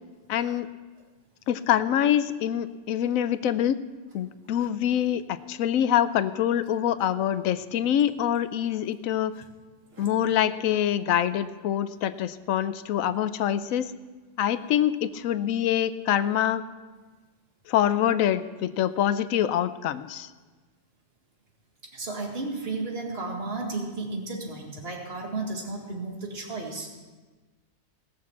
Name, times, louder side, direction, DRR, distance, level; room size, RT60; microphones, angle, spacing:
voice 1, 0.3-0.7 1.5-3.8 4.1-9.3 10.0-13.9 14.4-16.6 17.7-20.3, left 10 dB, 85° left, 13 dB, 1.0 m, -25 dB
voice 2, 21.9-27.0, right 3 dB, 50° right, 0 dB, 2.1 m, -33 dB
18.0 x 6.5 x 7.0 m, 1.3 s
omnidirectional pair, 1.4 m